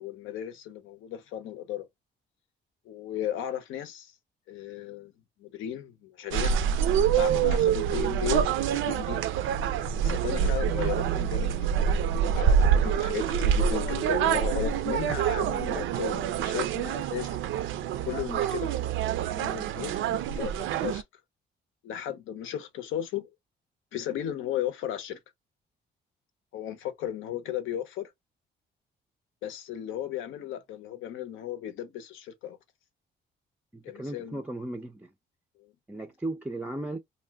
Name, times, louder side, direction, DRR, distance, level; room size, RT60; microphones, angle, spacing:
voice 1, 0.0-1.9 2.9-4.1 4.5-5.1 5.4-6.5 7.1-8.4 8.9-9.2 10.0-12.0 12.3-17.4 18.1-18.7 19.3-20.5 20.8-21.0 21.8-23.3 23.9-25.2 26.5-28.1 29.4-32.6 33.8-34.4 35.6-35.7, left 11 dB, 85° left, 0.7 m, -35 dB
sound 1, 6.3-21.0, right 8 dB, 80° right, 0.4 m, -26 dB
voice 2, 33.7-35.1 35.9-37.0, right 1 dB, 5° right, 0.4 m, -36 dB
2.6 x 2.1 x 3.4 m
cardioid pair, 90°, 20 cm